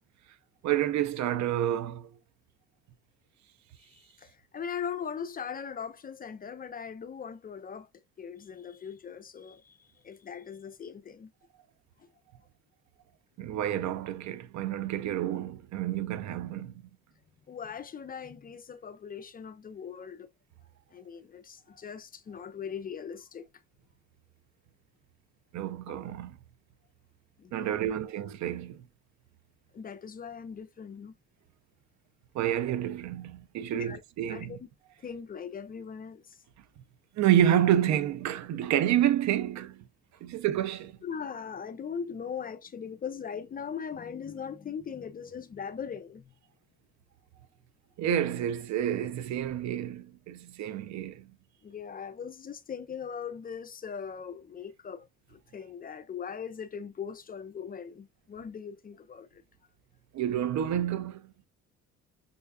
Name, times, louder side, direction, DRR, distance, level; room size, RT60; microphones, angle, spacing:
voice 1, 0.6-2.1 13.4-16.7 25.5-26.4 27.5-28.8 32.3-34.6 37.2-39.8 40.2-41.0 48.0-51.3 60.1-61.3, right 11 dB, 65° right, 0.4 m, -29 dB
voice 2, 3.8-7.9 8.2-11.3 17.5-20.3 20.9-23.5 27.4-27.8 29.7-31.1 33.7-34.0 34.3-34.7 35.0-36.4 41.0-46.3 51.6-59.4, left 7 dB, 30° left, 0.4 m, -40 dB
5.4 x 2.2 x 2.2 m
cardioid pair, 90°, 30 cm